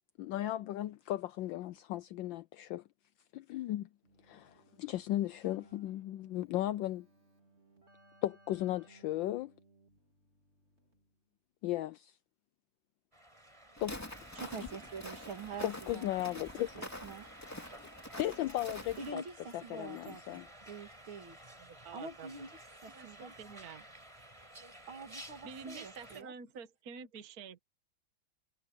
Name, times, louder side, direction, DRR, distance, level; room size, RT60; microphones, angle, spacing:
voice 1, 0.2-2.8 3.3-3.9 4.3-7.1 8.2-9.5 11.6-12.1 13.8-13.9 14.6-14.7 15.6-16.8 18.2-19.2 19.5-20.5, left 14 dB, 75° left, 1.2 m, -36 dB
Keyboard (musical), 4.0-11.3, right 3 dB, 30° right, 4.4 m, -65 dB
sound 1, 13.1-26.2, right 1 dB, 15° right, 4.6 m, -53 dB
Walk footsteps, 13.8-19.1, left 1 dB, 5° left, 2.4 m, -46 dB
voice 2, 14.3-17.3 19.0-21.4 21.7-23.3 24.9-26.3, right 4 dB, 70° right, 3.2 m, -46 dB
voice 3, 21.6-22.5 22.9-23.9 25.4-27.6, right 5 dB, 50° right, 1.5 m, -48 dB
omnidirectional pair, 2.3 m